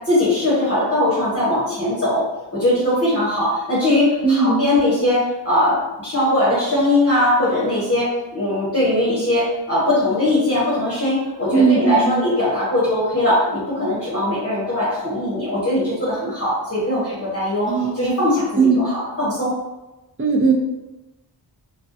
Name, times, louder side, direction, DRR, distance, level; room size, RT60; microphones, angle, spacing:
voice 1, 0.1-2.2 2.5-5.7 6.0-8.1 8.3-17.7 17.9-18.5 18.7-19.5, left 1 dB, 35° left, -8 dB, 0.8 m, -20 dB
voice 2, 4.2-4.7 11.5-12.2 17.7-18.0 18.6-18.9 20.2-20.5, right 4 dB, 30° right, 1 dB, 0.5 m, -17 dB
2.3 x 2.2 x 2.5 m, 1.0 s
wide cardioid pair, 55°, 43 cm